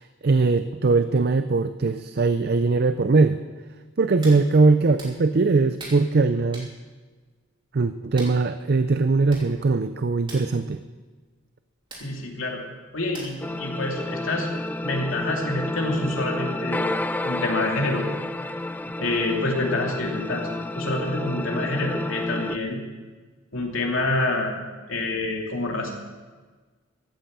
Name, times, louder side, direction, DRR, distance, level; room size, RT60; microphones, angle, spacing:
voice 1, 0.0-3.4 4.0-6.7 7.7-10.8, right 3 dB, 50° right, 11 dB, 0.5 m, -21 dB
Hands, 4.2-4.4 5.0-5.1 5.8-6.0 6.5-6.7 8.2-8.4 9.0-9.1 9.3-9.5 9.7-9.9 10.2-10.5 11.9-12.1 13.1-13.5 13.9-14.0, right 2 dB, 25° right, 3.1 m, -40 dB
voice 2, 12.0-12.6 12.9-14.5 14.8-16.9 17.2-18.0 19.0-20.5 20.7-22.8 23.5-24.6 24.9-25.9, left 2 dB, 75° left, 0 dB, 2.8 m, -27 dB
sound 1, 13.4-22.6, left 1 dB, 10° left, 0.3 m, -30 dB
15.0 x 9.1 x 7.5 m, 1.4 s
head